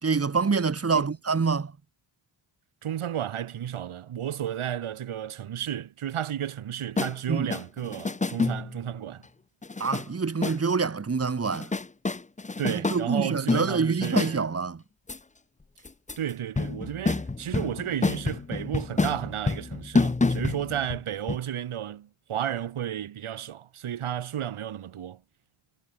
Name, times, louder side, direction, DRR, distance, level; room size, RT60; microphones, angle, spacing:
voice 1, 0.0-1.7 7.3-7.5 9.8-11.7 12.7-14.8, right 5 dB, 30° right, 1.6 m, -26 dB
voice 2, 2.8-9.2 12.6-14.6 16.2-25.2, right 10 dB, 80° right, 2.5 m, -33 dB
sound 1, 7.0-7.1 7.5-8.8 9.6-10.1 10.4-10.6 11.4-13.0 13.5-14.4 15.1-15.2 15.9-16.3 16.6-21.0 21.3-21.4, left 3 dB, 15° left, 0.9 m, -28 dB
wide cardioid pair, 125°, 49 cm